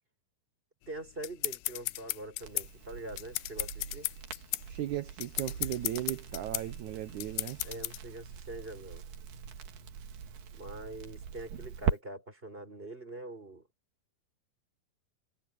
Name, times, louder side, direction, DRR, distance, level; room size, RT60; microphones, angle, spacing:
sound 1, 0.9-8.0, left 20 dB, 80° left, 2.4 m, -36 dB
voice 1, 0.9-4.1 7.6-9.1 10.5-13.7, right 2 dB, 15° right, 5.9 m, -44 dB
Crackle, 2.4-12.0, right 7 dB, 60° right, 3.3 m, -41 dB
voice 2, 4.7-7.6, right 13 dB, 85° right, 1.7 m, -36 dB
omnidirectional pair, 4.7 m